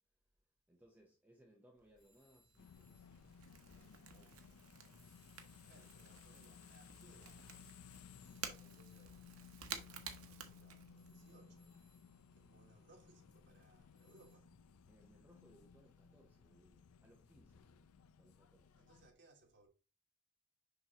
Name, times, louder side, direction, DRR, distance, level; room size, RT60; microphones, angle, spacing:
voice 1, 0.7-3.2 3.6-4.6 14.9-17.8 18.2-18.8, equal, 10° right, 1.0 m, -68 dB
Crackle / Crack, 1.8-11.3, right 7 dB, 80° right, 1.2 m, -53 dB
sound 1, 2.0-4.4 5.0-13.4 14.0-14.4, left 1 dB, 35° left, 4.0 m, -77 dB
sound 2, 2.6-19.1, left 6 dB, 90° left, 0.5 m, -60 dB
voice 2, 5.7-7.5 8.1-9.4 9.7-14.5 18.8-19.7, right 2 dB, 55° right, 2.6 m, -68 dB
6.7 x 5.6 x 3.0 m
head